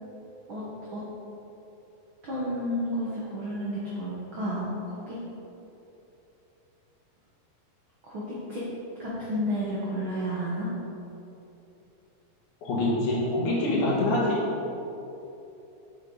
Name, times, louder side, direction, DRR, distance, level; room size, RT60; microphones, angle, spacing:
voice 1, 2.2-5.2 8.1-8.2 8.5-8.6 9.0-10.7, equal, 85° right, -8 dB, 1.1 m, -31 dB
voice 2, 12.6-14.5, left 1 dB, 65° left, -5 dB, 2.7 m, -25 dB
7.6 x 6.7 x 3.9 m, 2.9 s
omnidirectional pair, 4.3 m